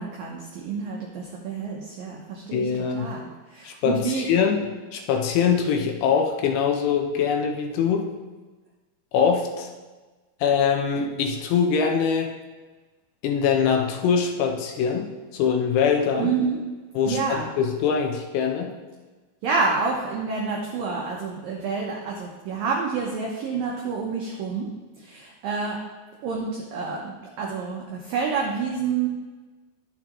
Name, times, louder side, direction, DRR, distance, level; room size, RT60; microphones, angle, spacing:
voice 1, 0.0-2.7 3.0-4.4 16.2-16.6 17.1-17.5 19.4-24.7 25.0-25.8 26.2-29.1, right 5 dB, 90° right, -1 dB, 1.9 m, -28 dB
voice 2, 2.5-3.1 3.6-8.1 9.1-9.7 10.4-12.3 13.2-16.3 17.0-18.7, left 6 dB, 80° left, 2 dB, 2.7 m, -23 dB
11.5 x 7.4 x 3.0 m, 1.3 s
omnidirectional pair, 5.3 m